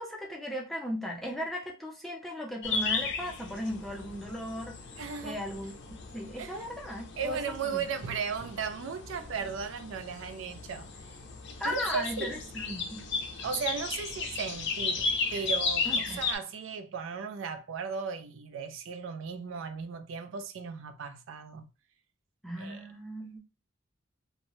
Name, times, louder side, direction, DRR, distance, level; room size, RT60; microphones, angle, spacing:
voice 1, 0.0-4.8 5.2-5.8 6.1-7.8 11.6-13.0 15.9-16.2 22.4-23.4, equal, ahead, 0.5 m, -37 dB
sound 1, 2.6-16.4, left 4 dB, 60° left, 0.5 m, -35 dB
voice 2, 5.0-5.4 6.4-6.5 7.2-11.2 11.6-12.4 13.4-21.7 22.6-22.8, right 5 dB, 70° right, 0.4 m, -36 dB
2.7 x 2.1 x 2.9 m
head